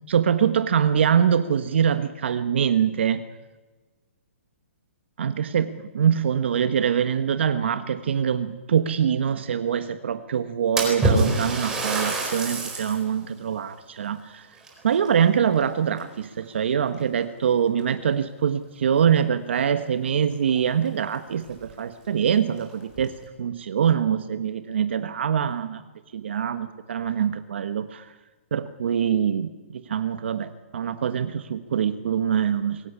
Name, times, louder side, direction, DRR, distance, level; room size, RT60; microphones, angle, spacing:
voice 1, 0.1-3.2 5.2-14.5 14.8-23.1 23.4-25.8 26.1-28.1 28.5-32.8, right 8 dB, 55° right, 10 dB, 1.3 m, -24 dB
Splash splatter, 10.8-13.1 13.6-13.7 14.6-15.6 16.0-16.4 17.2-17.3 17.8-17.9 20.1-20.2 20.5-20.6 21.1-21.2 21.6-21.7 22.5-23.1, right 2 dB, 10° right, 4.5 m, -26 dB
22.5 x 17.0 x 10.0 m, 1.2 s
hypercardioid pair, 165°, 7 cm